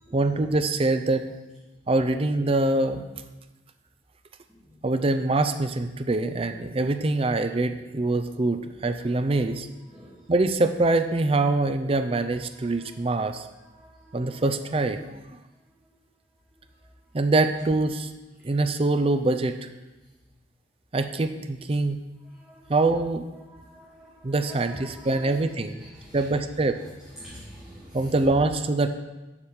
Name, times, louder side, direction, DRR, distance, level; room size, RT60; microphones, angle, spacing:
voice 1, 0.1-1.3 1.9-3.0 4.8-9.7 10.3-13.4 14.1-15.2 17.1-18.1 18.4-19.7 20.9-22.0 22.7-23.2 24.2-25.8 26.1-26.8 27.9-28.9, right 2 dB, 30° right, 8 dB, 0.5 m, -24 dB
voice 2, 23.5-24.1 24.5-25.3 26.0-26.2 27.2-27.9, equal, 5° right, -9 dB, 1.8 m, -46 dB
7.2 x 5.3 x 6.4 m, 1.1 s
head